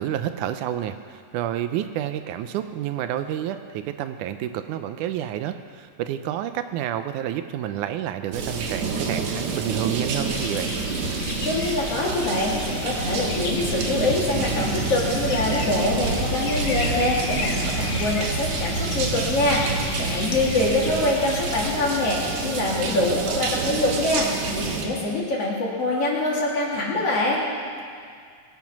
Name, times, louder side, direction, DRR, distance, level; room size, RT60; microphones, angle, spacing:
voice 1, 0.0-10.7 20.6-21.1, right 11 dB, 80° right, 9 dB, 1.9 m, -29 dB
sound 1, 8.3-24.8, right 4 dB, 65° right, 2.5 m, -28 dB
sound 2, 10.2-22.9, left 4 dB, 70° left, 1.1 m, -34 dB
voice 2, 11.4-27.4, left 2 dB, 50° left, -5 dB, 3.2 m, -24 dB
21.0 x 9.1 x 5.9 m, 2.1 s
omnidirectional pair, 3.8 m